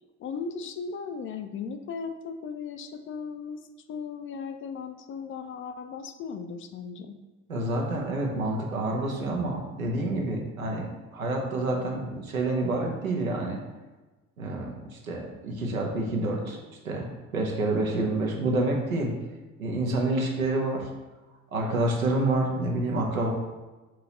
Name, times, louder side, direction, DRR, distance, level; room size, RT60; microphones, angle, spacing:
voice 1, 0.2-7.2, left 5 dB, 30° left, 7 dB, 0.4 m, -37 dB
voice 2, 7.5-13.6 14.4-16.6 16.8-19.1 19.6-20.9 21.5-23.3, right 2 dB, 85° right, 0 dB, 0.8 m, -28 dB
6.1 x 2.8 x 2.9 m, 1.2 s
figure-of-eight pair, 55°, 40 cm